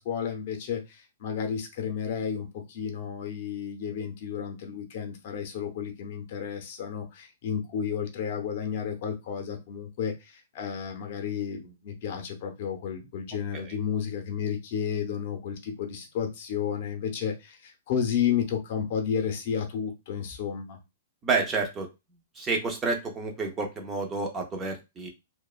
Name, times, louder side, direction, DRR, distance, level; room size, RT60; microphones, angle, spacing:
voice 1, 0.0-20.8, left 7 dB, 40° left, 4 dB, 0.6 m, -32 dB
voice 2, 21.2-21.9 22.4-25.1, right 4 dB, 10° right, 2 dB, 0.3 m, -29 dB
2.8 x 2.1 x 2.3 m, 0.24 s
hypercardioid pair, 175°, 0 cm